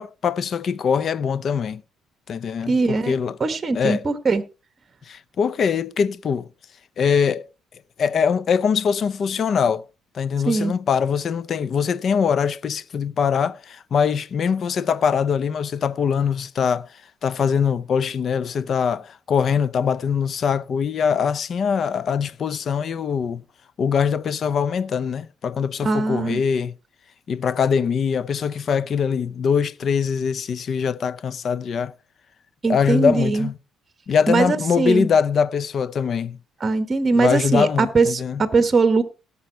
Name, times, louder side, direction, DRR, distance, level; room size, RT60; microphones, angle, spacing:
voice 1, 0.0-1.8 2.3-3.4 3.7-4.0 5.1-6.5 7.0-7.5 8.0-9.8 10.1-16.9 17.2-23.4 23.8-26.7 27.3-31.9 32.7-33.6 34.1-36.4 37.1-38.4, left 6 dB, 40° left, 0.6 m, -22 dB
voice 2, 2.7-3.1 3.4-4.4 10.5-10.7 25.8-26.4 32.6-33.5 34.3-35.1 36.6-39.0, right 3 dB, 25° right, 1.2 m, -20 dB
17.0 x 7.0 x 4.5 m
cardioid pair, 140°, 0 cm